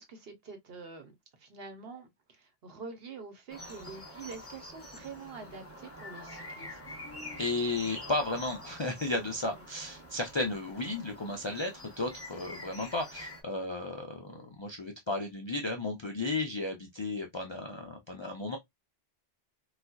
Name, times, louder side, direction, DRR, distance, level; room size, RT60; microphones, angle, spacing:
voice 1, 0.0-7.0 9.5-9.6, right 4 dB, 65° right, 1.1 m, -46 dB
sound 1, 3.5-13.4, left 1 dB, 15° left, 0.8 m, -46 dB
voice 2, 7.4-18.6, left 2 dB, 45° left, 0.4 m, -34 dB
4.0 x 2.4 x 2.2 m
omnidirectional pair, 1.1 m